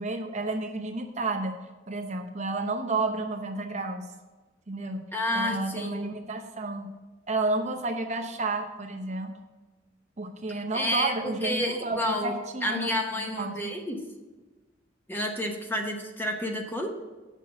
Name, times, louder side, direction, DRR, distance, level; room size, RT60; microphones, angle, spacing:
voice 1, 0.0-1.5 1.9-4.0 4.7-5.0 5.3-6.9 7.3-9.3 10.2-12.9 13.4-13.6, right 2 dB, 40° right, 4 dB, 0.7 m, -31 dB
voice 2, 5.1-6.1 10.5-12.3 12.6-14.0 15.1-16.9, left 1 dB, 10° left, 2 dB, 0.9 m, -30 dB
7.3 x 5.7 x 6.3 m, 1.3 s
head